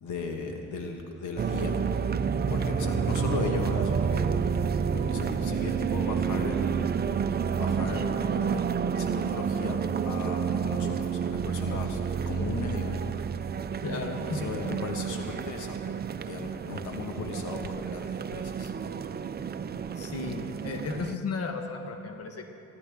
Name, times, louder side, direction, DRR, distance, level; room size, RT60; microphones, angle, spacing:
voice 1, 0.0-2.0 2.5-4.3 4.9-7.0 7.6-12.0 12.2-13.0 13.8-18.7, left 4 dB, 75° left, 3 dB, 1.5 m, -37 dB
sound 1, 1.4-21.2, right 6 dB, 35° right, 0.5 m, -29 dB
voice 2, 13.8-14.5 19.9-22.4, left 4 dB, 55° left, 4 dB, 1.3 m, -34 dB
27.0 x 10.5 x 3.6 m, 2.7 s
cardioid pair, 90°, 30 cm